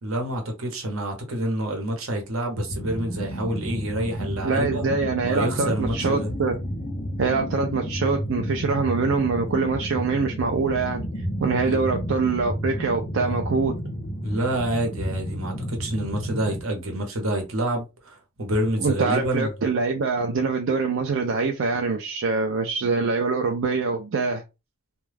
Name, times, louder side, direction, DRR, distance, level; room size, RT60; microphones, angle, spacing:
voice 1, 0.0-4.8 5.3-6.3 11.6-11.8 14.2-19.5, right 1 dB, 85° right, 0.9 m, -27 dB
sound 1, 2.7-16.6, equal, 25° left, 0.4 m, -31 dB
voice 2, 4.4-6.5 7.2-13.7 18.8-24.4, right 4 dB, 70° right, 0.4 m, -24 dB
2.3 x 2.2 x 3.2 m
head